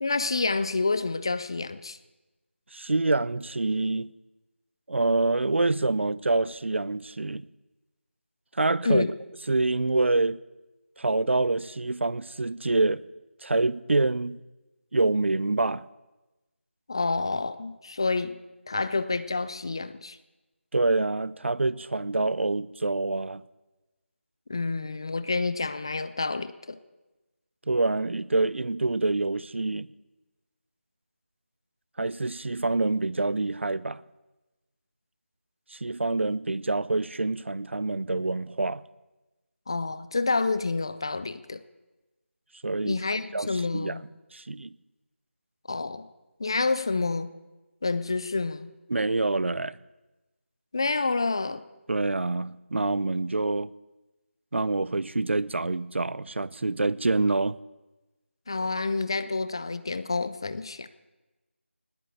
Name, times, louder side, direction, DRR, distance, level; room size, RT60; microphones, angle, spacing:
voice 1, 0.0-2.0 8.8-9.1 16.9-18.4 18.7-20.2 24.5-26.8 39.7-41.6 42.9-44.0 45.7-46.1 46.4-47.3 47.8-48.7 50.7-51.6 58.5-60.9, left 3 dB, 20° left, 0.4 m, -28 dB
voice 2, 2.7-4.1 4.9-7.5 8.6-9.1 9.5-10.4 11.0-13.0 13.4-14.4 14.9-15.8 20.7-23.4 27.7-29.9 32.0-34.0 35.7-38.8 42.6-43.0 43.3-44.0 44.3-44.7 48.9-49.8 51.9-53.7 54.5-57.6, right 2 dB, 65° right, 0.6 m, -26 dB
19.5 x 8.9 x 8.2 m
figure-of-eight pair, 170°, 7 cm